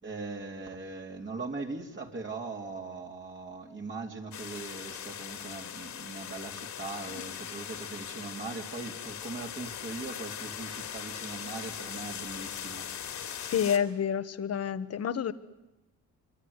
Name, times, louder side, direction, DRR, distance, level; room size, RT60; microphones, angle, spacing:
voice 1, 0.0-13.5, right 3 dB, 40° right, 1 dB, 3.4 m, -40 dB
sound 1, 4.3-13.8, left 9 dB, 70° left, 3.0 m, -40 dB
voice 2, 13.5-15.3, left 8 dB, 55° left, 12 dB, 1.5 m, -29 dB
25.0 x 24.5 x 9.8 m, 0.94 s
cardioid pair, 90°, 30 cm